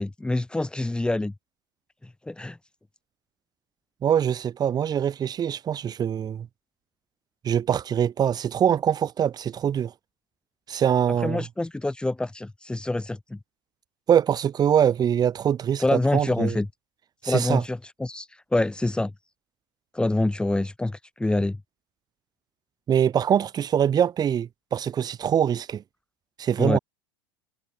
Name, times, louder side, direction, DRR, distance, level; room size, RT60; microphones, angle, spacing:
voice 1, 0.0-1.3 2.0-2.6 11.2-13.4 15.8-16.7 17.2-19.1 19.9-21.6 26.6-26.8, left 2 dB, 5° left, 2.0 m, -26 dB
voice 2, 4.0-6.5 7.4-9.9 10.7-11.4 14.1-16.6 17.2-17.6 22.9-25.8 26.4-26.8, right 9 dB, 35° right, 5.6 m, -23 dB
hypercardioid pair, 90°, 12 cm